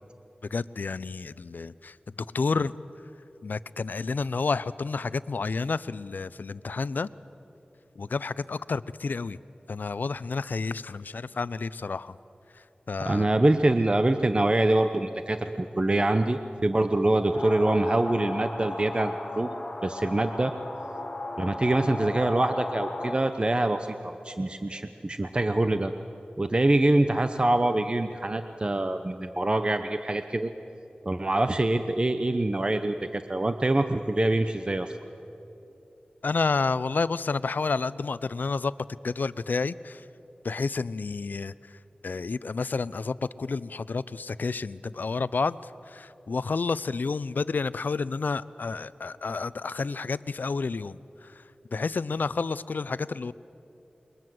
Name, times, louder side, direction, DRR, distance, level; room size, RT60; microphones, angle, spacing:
voice 1, 0.5-2.7 3.4-7.1 8.0-9.4 9.7-12.2 12.5-13.3 36.2-38.7 39.0-40.1 40.4-51.4 51.7-53.3, left 4 dB, 80° left, 17 dB, 0.5 m, -30 dB
voice 2, 13.0-19.6 19.8-20.5 21.4-25.9 26.4-30.5 31.1-35.0, right 2 dB, 35° right, 8 dB, 0.9 m, -25 dB
sound 1, 17.3-23.1, left 2 dB, 40° left, 4.4 m, -35 dB
28.0 x 23.0 x 7.8 m, 2.9 s
wide cardioid pair, 70°, 3 cm